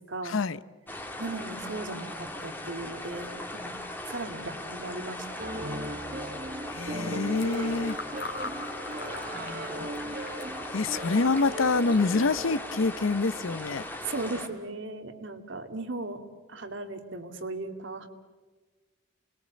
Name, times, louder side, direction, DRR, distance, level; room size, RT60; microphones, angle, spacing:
voice 1, 0.2-0.6 6.7-8.0 9.7-9.9 10.7-13.9, left 3 dB, 80° left, 17 dB, 0.7 m, -26 dB
sound 1, 0.9-14.5, left 1 dB, 10° left, 1.9 m, -39 dB
voice 2, 1.2-3.7 4.1-5.3 5.5-5.8 9.3-9.8 14.0-16.2 16.5-18.1, right 2 dB, 70° right, 7 dB, 2.4 m, -37 dB
sound 2, 5.4-12.9, right 1 dB, 45° right, 1.1 m, -38 dB
Fill (with liquid), 7.1-13.3, left 3 dB, 50° left, 2.8 m, -44 dB
28.5 x 21.0 x 8.4 m, 1.3 s
head